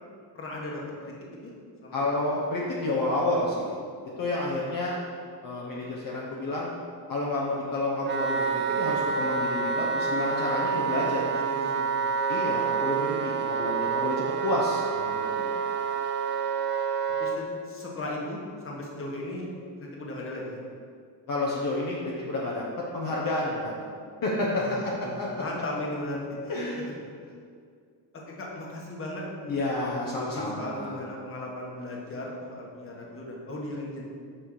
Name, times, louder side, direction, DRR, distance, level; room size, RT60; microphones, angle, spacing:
voice 1, 0.3-1.1 1.4-1.5 1.8-2.4 11.3-12.0 17.2-18.4 18.6-19.5 19.8-20.6 24.5-26.7 28.1-34.0, left 1 dB, 30° left, -2 dB, 1.4 m, -37 dB
voice 2, 1.9-3.8 4.2-5.0 5.4-6.7 7.1-11.3 12.3-15.5 21.3-22.7 22.9-23.7 24.2-25.4 26.5-26.8 29.5-31.0, left 2 dB, 50° left, -4 dB, 1.0 m, -30 dB
Wind instrument woodwind instrument, 8.0-17.4, right 6 dB, 30° right, 0.4 m, -28 dB
6.2 x 5.0 x 4.8 m, 2.2 s
cardioid pair, 130°, 42 cm